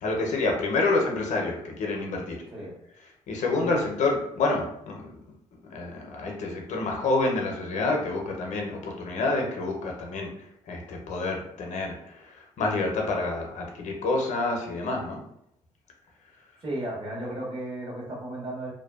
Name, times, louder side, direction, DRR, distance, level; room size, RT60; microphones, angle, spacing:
voice 1, 0.0-2.4 3.3-5.3 5.7-10.3 10.7-15.2, left 3 dB, 65° left, 1 dB, 0.6 m, -28 dB
voice 2, 16.6-18.7, right 1 dB, 40° right, -4 dB, 1.2 m, -34 dB
2.5 x 2.2 x 2.3 m, 0.76 s
cardioid pair, 75°, 13 cm